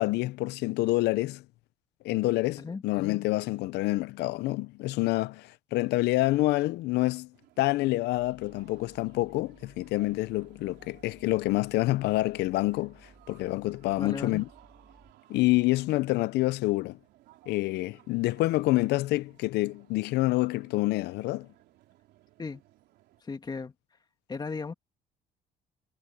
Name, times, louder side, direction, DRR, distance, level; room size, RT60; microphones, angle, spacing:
voice 1, 0.0-1.4 2.0-7.3 7.6-13.0 13.3-14.5 15.3-17.0 17.5-21.5, left 19 dB, 80° left, 0.6 m, -27 dB
sound 1, 7.3-23.2, right 15 dB, 85° right, 3.7 m, -60 dB
Mechanical fan, 8.1-15.1, equal, ahead, 5.7 m, -59 dB
voice 2, 14.0-14.4 22.4-22.6 23.2-23.7 24.3-24.7, left 4 dB, 25° left, 2.2 m, -36 dB
cardioid pair, 110°, 17 cm